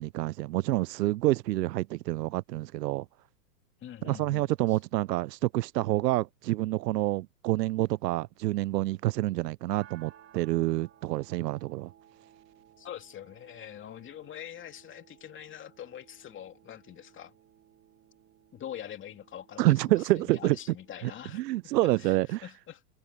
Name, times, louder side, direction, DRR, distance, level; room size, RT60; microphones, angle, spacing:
voice 1, 0.0-3.1 4.0-11.9 19.6-20.6 21.0-22.4, right 17 dB, 85° right, 0.5 m, -28 dB
voice 2, 3.8-4.8 12.8-17.3 18.5-22.8, left 10 dB, 25° left, 2.7 m, -44 dB
sound 1, 9.8-21.8, right 11 dB, 25° right, 3.9 m, -59 dB
hypercardioid pair, 125°, 48 cm